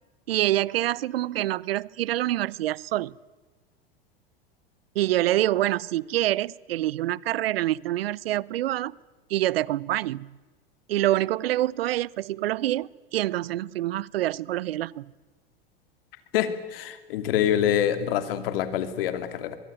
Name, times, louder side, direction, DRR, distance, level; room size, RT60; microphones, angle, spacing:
voice 1, 0.3-3.1 4.9-9.0 9.3-10.3 10.9-15.1, right 15 dB, 75° right, 25 dB, 0.7 m, -26 dB
voice 2, 16.3-19.6, left 10 dB, 65° left, 10 dB, 2.9 m, -26 dB
23.5 x 22.5 x 9.2 m, 1.3 s
hypercardioid pair, 90°, 30 cm